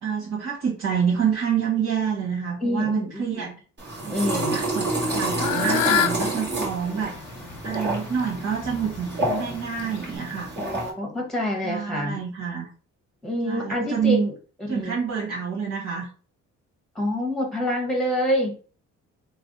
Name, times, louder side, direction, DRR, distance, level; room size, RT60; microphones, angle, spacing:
voice 1, 0.0-3.5 4.0-7.1 7.6-10.5 11.6-12.7 13.4-14.3 14.7-16.1, right 7 dB, 55° right, -6 dB, 1.7 m, -27 dB
voice 2, 2.6-3.5 4.1-4.6 10.6-12.2 13.2-14.3 14.7-15.0 16.9-18.5, equal, ahead, 1 dB, 1.3 m, -27 dB
sound 1, 3.8-10.9, right 2 dB, 35° right, 1.9 m, -29 dB
Fowl / Bird, 4.9-10.2, left 10 dB, 80° left, 0.5 m, -30 dB
3.3 x 2.2 x 4.0 m, 0.38 s
cardioid pair, 90°, 30 cm